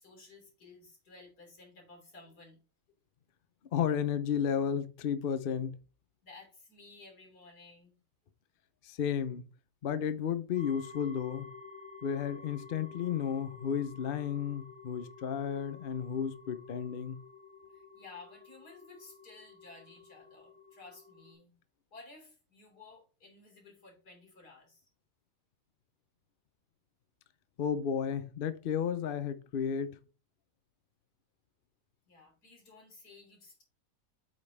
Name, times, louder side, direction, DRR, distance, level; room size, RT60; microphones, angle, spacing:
voice 1, 0.0-2.6 6.2-8.0 17.7-21.6 21.9-24.9 32.1-33.6, left 3 dB, 60° left, 3.7 m, -54 dB
voice 2, 3.7-5.8 8.8-9.5 9.8-11.5 12.0-17.2 27.6-30.0, left 8 dB, 75° left, 0.5 m, -33 dB
sound 1, 10.5-21.3, left 4 dB, 40° left, 1.8 m, -52 dB
8.5 x 5.4 x 3.5 m
omnidirectional pair, 1.9 m